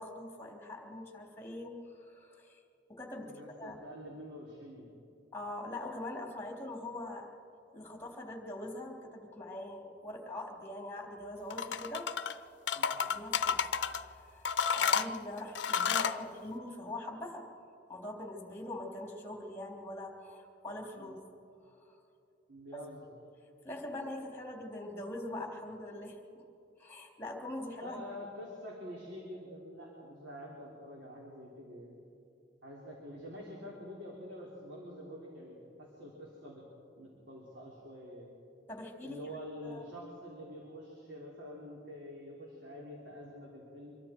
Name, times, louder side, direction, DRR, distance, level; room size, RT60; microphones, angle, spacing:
voice 1, 0.0-2.6 2.9-3.3 3.6-3.8 5.3-7.3 7.7-12.1 12.9-13.7 13.9-17.5 17.9-21.2 21.7-22.0 22.7-22.9 23.6-26.4 26.8-28.0 38.7-39.4 39.6-39.8, left 1 dB, 15° left, 1 dB, 3.3 m, -43 dB
voice 2, 3.2-5.0 12.7-13.0 21.0-21.2 22.5-23.1 27.8-32.0 32.6-36.6 36.9-38.3 39.0-44.0, equal, 75° right, -4 dB, 3.8 m, -47 dB
sound 1, 11.5-12.3 12.7-14.0 14.4-16.2, left 6 dB, 75° left, 0.7 m, -31 dB
26.0 x 23.5 x 4.6 m, 2.7 s
head